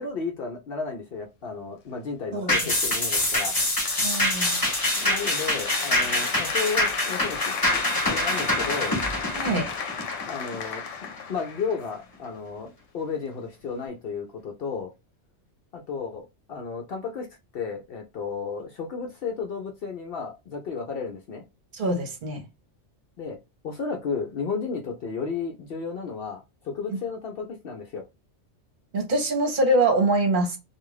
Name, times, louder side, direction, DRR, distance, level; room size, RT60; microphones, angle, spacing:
voice 1, 0.0-3.6 5.0-7.8 8.1-9.0 10.3-10.8 11.3-14.9 15.7-17.3 17.5-21.4 23.2-23.4 23.6-28.0, left 5 dB, 60° left, 0.7 m, -33 dB
voice 2, 2.3-2.7 4.0-4.6 9.3-9.7 21.7-22.4 28.9-30.6, right 2 dB, 45° right, 0.9 m, -24 dB
sound 1, 2.5-11.2 11.6-11.7, left 1 dB, 25° left, 0.6 m, -25 dB
Applause, 3.2-12.2, left 6 dB, 85° left, 0.9 m, -34 dB
2.4 x 2.3 x 3.1 m
omnidirectional pair, 1.2 m